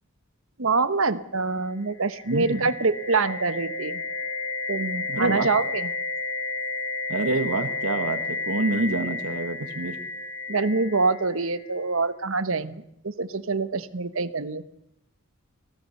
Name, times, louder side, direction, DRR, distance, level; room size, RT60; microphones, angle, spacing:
voice 1, 0.6-4.0 4.7-5.9 10.5-14.6, right 3 dB, 60° right, 13 dB, 1.1 m, -25 dB
sound 1, 1.9-11.7, left 3 dB, 70° left, 4.6 m, -32 dB
voice 2, 2.2-2.7 5.1-5.5 7.1-10.0, right 2 dB, 90° right, 9 dB, 1.7 m, -27 dB
25.0 x 17.0 x 6.6 m, 0.80 s
head